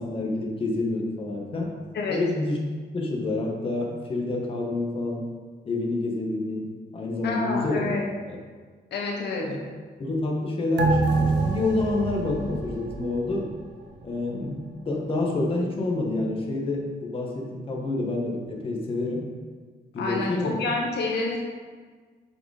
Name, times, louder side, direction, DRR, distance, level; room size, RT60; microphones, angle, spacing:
voice 1, 0.0-1.8 2.1-2.6 2.9-5.3 5.6-7.9 8.3-8.4 9.4-9.6 10.0-13.5 14.0-19.3 19.9-20.6, left 2 dB, 30° left, -1 dB, 1.4 m, -28 dB
voice 2, 7.2-8.1 8.9-9.5 20.0-21.4, left 3 dB, 65° left, 0 dB, 1.1 m, -28 dB
sound 1, 10.8-13.7 14.0-14.1, right 3 dB, 80° right, 1.1 m, -26 dB
8.2 x 5.1 x 4.9 m, 1.5 s
wide cardioid pair, 175°, 18 cm